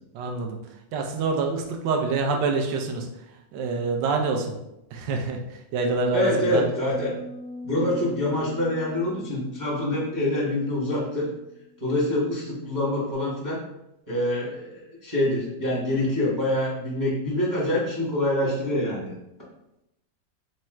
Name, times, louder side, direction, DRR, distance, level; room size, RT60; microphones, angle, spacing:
voice 1, 0.1-0.6 0.9-3.1 3.5-4.5 4.9-5.4 5.7-6.6, right 4 dB, 75° right, 2 dB, 1.2 m, -26 dB
voice 2, 6.1-7.1 7.6-11.3 11.8-13.6 14.1-19.1, left 1 dB, 25° right, -6 dB, 0.6 m, -25 dB
sound 1, 6.9-13.2, left 1 dB, 70° left, 0.8 m, -43 dB
3.5 x 2.1 x 4.3 m, 0.87 s
omnidirectional pair, 2.0 m